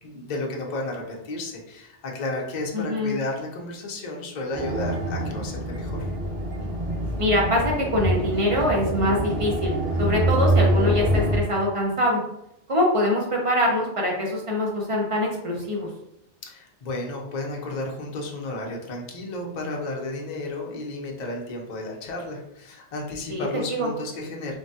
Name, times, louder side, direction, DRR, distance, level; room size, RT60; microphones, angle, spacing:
voice 1, 0.0-6.0 16.5-24.6, left 2 dB, 50° left, 0 dB, 0.6 m, -32 dB
voice 2, 2.7-3.2 7.2-12.2 12.7-15.9 23.3-23.9, left 1 dB, 50° right, -2 dB, 0.4 m, -24 dB
sound 1, 4.5-11.4, right 1 dB, 80° right, 1.3 m, -25 dB
3.3 x 2.2 x 2.6 m, 0.81 s
omnidirectional pair, 1.2 m